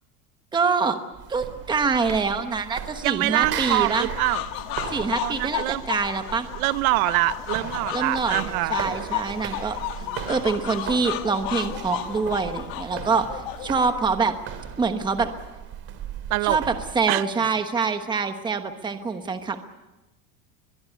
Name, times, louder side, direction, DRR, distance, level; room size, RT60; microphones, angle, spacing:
voice 1, 0.5-1.0 1.3-4.1 4.9-6.5 7.9-9.8 10.3-14.3 14.8-15.3 16.4-19.6, right 5 dB, 10° right, 8 dB, 1.1 m, -25 dB
sound 1, 1.1-17.0, right 8 dB, 30° right, 2.6 m, -37 dB
voice 2, 3.0-4.4 5.2-5.8 6.5-9.0 10.1-10.3 16.3-16.6 17.1-17.2, right 19 dB, 70° right, 15 dB, 0.9 m, -24 dB
sound 2, 3.4-13.9, left 14 dB, 50° left, 1.6 m, -33 dB
23.0 x 22.0 x 8.3 m, 1.0 s
cardioid pair, 180°, 43 cm